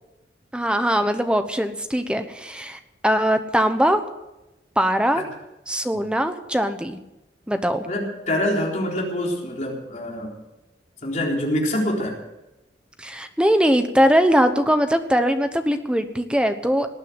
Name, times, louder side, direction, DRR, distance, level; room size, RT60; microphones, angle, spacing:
voice 1, 0.5-4.0 4.8-5.2 5.7-7.0 7.5-7.9 13.0-16.9, equal, 5° right, 8 dB, 1.0 m, -21 dB
voice 2, 7.9-10.3 11.0-12.2, left 1 dB, 40° left, -1 dB, 3.9 m, -25 dB
19.0 x 9.2 x 7.9 m, 0.97 s
head